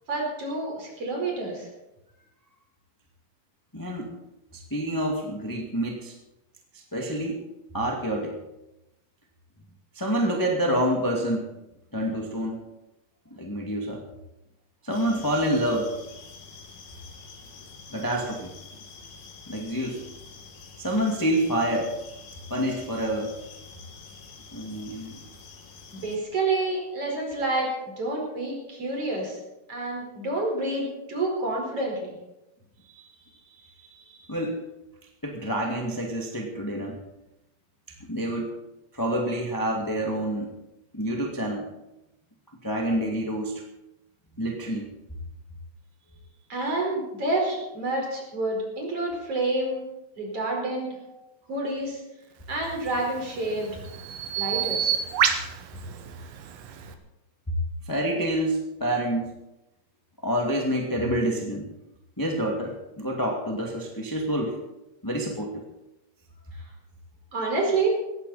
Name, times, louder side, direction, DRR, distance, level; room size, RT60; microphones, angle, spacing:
voice 1, 0.1-1.7 25.9-27.7 28.0-29.4 29.7-32.2 46.5-49.8 50.2-50.9 51.5-52.0 52.5-53.7 54.4-54.9 67.3-68.0, right 2 dB, 40° right, -1 dB, 5.6 m, -28 dB
voice 2, 3.7-4.1 4.5-6.1 6.9-7.4 7.7-8.4 9.9-11.5 11.9-12.6 13.3-14.0 14.8-15.9 17.9-18.5 19.5-20.0 20.8-21.9 22.5-23.3 24.5-25.1 32.9-34.6 35.2-37.0 38.1-38.6 38.9-40.5 40.9-41.7 42.6-43.6 44.4-44.9 57.8-59.3 60.2-61.7 62.2-64.6 65.0-65.6, right 1 dB, 10° left, -1 dB, 1.4 m, -28 dB
sound 1, 14.9-26.2, left 4 dB, 75° left, 3.9 m, -47 dB
Bird vocalization bird call bird song, 52.7-57.0, right 8 dB, 70° right, 2.7 m, -29 dB
18.5 x 15.0 x 4.3 m, 0.93 s
omnidirectional pair, 4.3 m